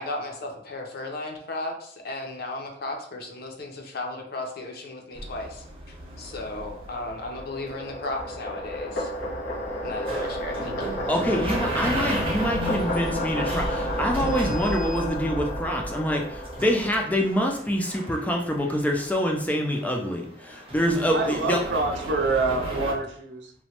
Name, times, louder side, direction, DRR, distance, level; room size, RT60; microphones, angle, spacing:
voice 1, 0.0-9.1 9.8-11.0, left 2 dB, 55° left, 2 dB, 0.5 m, -35 dB
sound 1, 5.2-22.9, equal, 30° right, 0.7 m, -36 dB
sound 2, 6.6-17.2, equal, 85° left, 1.1 m, -31 dB
voice 2, 11.1-21.6, equal, 10° left, 1 dB, 0.3 m, -26 dB
voice 3, 21.1-23.5, right 3 dB, 65° right, 2 dB, 0.5 m, -26 dB
3.0 x 2.1 x 2.8 m, 0.63 s
head